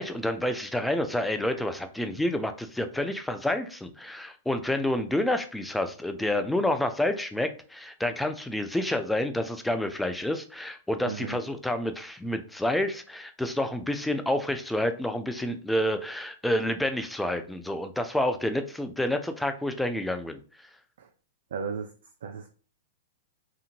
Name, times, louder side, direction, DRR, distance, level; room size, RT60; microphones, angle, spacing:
voice 1, 0.0-20.4, left 1 dB, 5° left, 8 dB, 0.4 m, -29 dB
voice 2, 11.0-11.4 21.0-21.1 21.5-21.9 22.2-22.5, right 5 dB, 70° right, 4 dB, 0.3 m, -34 dB
2.8 x 2.5 x 2.5 m, 0.38 s
hypercardioid pair, 110°, 0 cm